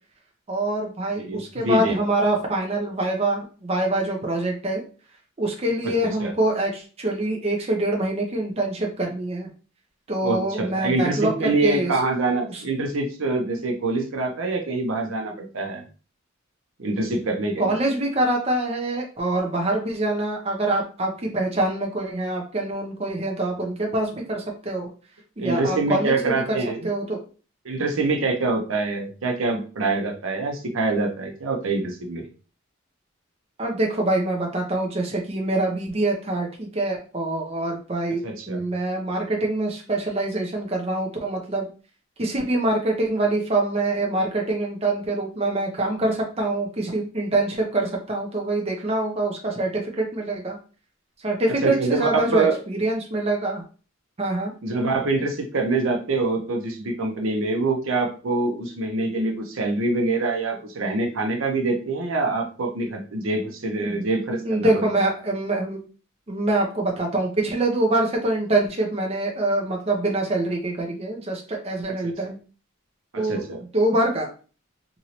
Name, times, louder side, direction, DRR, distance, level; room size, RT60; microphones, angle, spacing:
voice 1, 0.5-4.8 5.4-9.5 10.1-11.9 12.5-12.6 17.6-24.9 25.4-26.4 26.8-27.2 33.6-41.6 42.2-50.6 51.2-53.6 54.2-54.5 63.8-64.0 64.5-65.8 66.3-72.4 73.2-73.4 73.7-74.3, right 2 dB, 30° right, 0 dB, 0.6 m, -25 dB
voice 2, 1.2-2.0 5.8-6.3 10.2-15.8 16.8-17.7 25.4-26.9 27.6-32.3 38.2-38.6 51.5-52.6 54.6-64.8 72.0-72.1 73.1-73.6, right 3 dB, 70° right, 3 dB, 0.7 m, -25 dB
3.0 x 2.6 x 2.9 m, 0.37 s
head